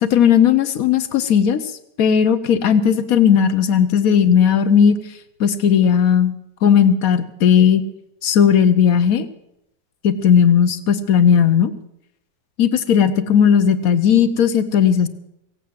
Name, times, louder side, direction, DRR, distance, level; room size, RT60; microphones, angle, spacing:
voice 1, 0.0-1.6 2.0-5.0 5.4-6.3 6.6-7.8 8.2-9.3 10.0-11.7 12.6-15.1, left 8 dB, 60° left, 12 dB, 1.1 m, -15 dB
17.0 x 8.5 x 7.8 m, 0.82 s
omnidirectional pair, 2.0 m